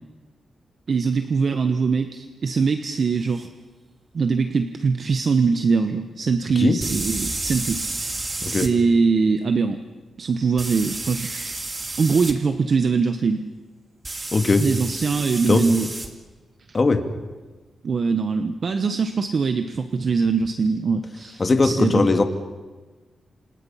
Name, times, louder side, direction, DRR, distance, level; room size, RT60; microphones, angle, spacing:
voice 1, 0.9-3.5 4.1-7.8 8.4-9.8 10.2-11.6 12.0-13.4 14.6-15.9 17.8-22.1, right 5 dB, 45° right, 8 dB, 1.1 m, -22 dB
sound 1, 3.4-3.5 6.8-8.7 10.6-12.3 14.0-16.1, right 2 dB, 25° right, 2.5 m, -31 dB
voice 2, 14.3-14.6 15.5-15.6 16.7-17.0 21.4-22.2, left 3 dB, 30° left, 7 dB, 2.1 m, -19 dB
28.0 x 27.0 x 5.7 m, 1.3 s
wide cardioid pair, 135°, 0 cm